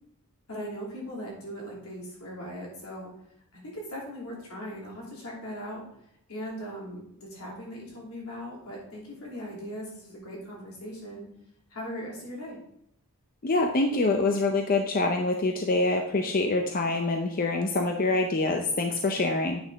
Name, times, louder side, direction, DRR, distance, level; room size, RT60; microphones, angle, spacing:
voice 1, 0.5-3.1 3.5-5.8 6.3-11.3 11.7-12.6, equal, 80° left, -4 dB, 3.0 m, -39 dB
voice 2, 13.4-19.6, left 2 dB, 40° left, 4 dB, 0.6 m, -25 dB
8.7 x 5.4 x 4.0 m, 0.72 s
head